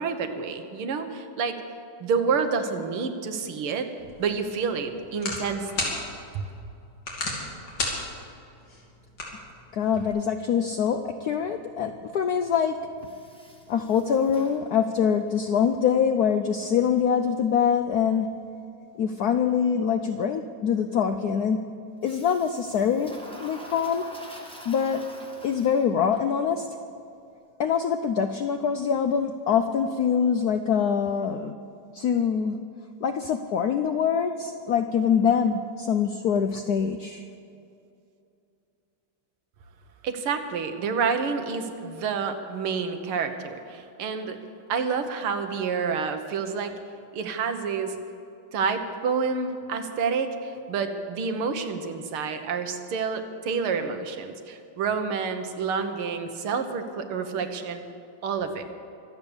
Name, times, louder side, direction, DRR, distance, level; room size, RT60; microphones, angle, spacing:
voice 1, 0.0-1.6 2.0-3.9 4.2-6.0 6.3-6.4 40.0-44.4 44.7-46.7 47.1-48.0 48.5-57.8 58.2-58.6, right 5 dB, 80° right, 7 dB, 2.0 m, -28 dB
sound 1, 4.0-10.1, left 2 dB, 55° left, 3.4 m, -35 dB
voice 2, 9.7-12.8 13.7-18.3 19.0-21.7 22.0-24.1 24.7-25.0 25.4-26.7 27.6-31.6 31.9-32.6 33.0-37.2, left 7 dB, 75° left, 8 dB, 0.8 m, -24 dB
Toilet flush, 13.0-15.3 22.0-26.2, equal, 5° left, 1.5 m, -46 dB
24.5 x 8.3 x 7.1 m, 2.6 s
omnidirectional pair, 2.4 m